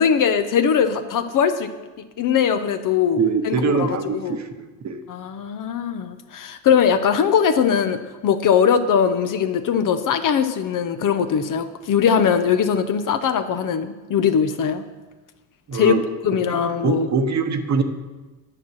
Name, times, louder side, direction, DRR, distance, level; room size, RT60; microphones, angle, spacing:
voice 1, 0.0-1.7 2.2-3.2 3.4-4.4 5.1-14.8 15.7-15.9 16.2-17.1, left 7 dB, 40° left, 9 dB, 0.8 m, -20 dB
voice 2, 3.2-5.0 15.7-16.0 16.5-16.6 16.8-17.8, right 5 dB, 35° right, 8 dB, 1.0 m, -23 dB
10.0 x 5.8 x 6.3 m, 1.2 s
supercardioid pair, 90°, 47 cm